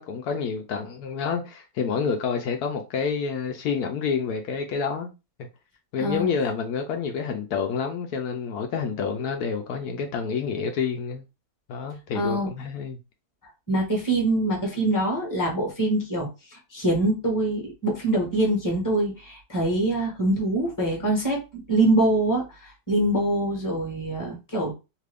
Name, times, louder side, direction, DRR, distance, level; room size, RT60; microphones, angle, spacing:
voice 1, 0.0-5.1 5.9-11.2 11.7-13.0, left 6 dB, 75° left, 1.1 m, -28 dB
voice 2, 12.1-12.5 13.7-24.7, right 1 dB, 15° left, 1.0 m, -24 dB
2.9 x 2.5 x 3.4 m
omnidirectional pair, 1.7 m